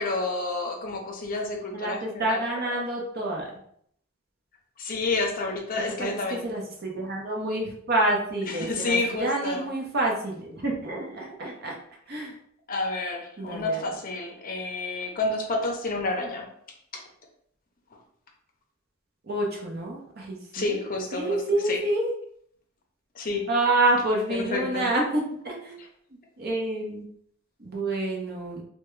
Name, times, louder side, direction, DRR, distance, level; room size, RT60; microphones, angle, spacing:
voice 1, 0.0-2.7 4.8-6.5 8.5-9.7 12.7-16.5 16.9-17.0 20.5-21.8 23.1-23.4 24.5-24.9, left 2 dB, 40° left, 2 dB, 0.6 m, -29 dB
voice 2, 1.7-3.5 5.9-11.7 12.1-12.3 13.4-13.9 19.2-20.8 21.1-22.1 23.5-25.7 26.4-27.0 27.6-28.6, right 2 dB, 45° right, -1 dB, 0.8 m, -28 dB
3.4 x 2.2 x 3.1 m, 0.67 s
head